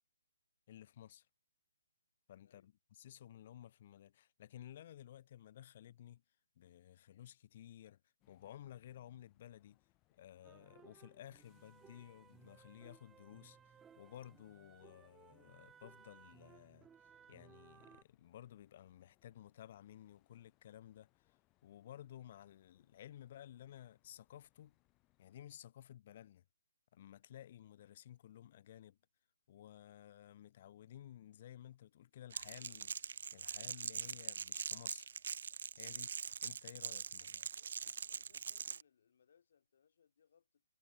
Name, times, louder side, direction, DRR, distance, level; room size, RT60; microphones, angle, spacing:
voice 1, 0.7-1.3 2.3-6.2 6.6-8.0 8.3-9.8 10.1-16.9 17.3-21.1 21.6-24.8 25.2-26.4 26.9-29.0 29.5-35.1 35.8-36.1 36.4-37.4, left 11 dB, 35° left, 0.5 m, -55 dB
sound 1, 8.2-25.4, left 21 dB, 20° left, 3.3 m, -78 dB
sound 2, 10.4-18.0, right 7 dB, 10° right, 2.0 m, -63 dB
Crackle, 32.3-38.8, right 6 dB, 60° right, 0.4 m, -43 dB
voice 2, 38.1-40.6, left 7 dB, 55° left, 2.9 m, -72 dB
hypercardioid pair, 160°, 0 cm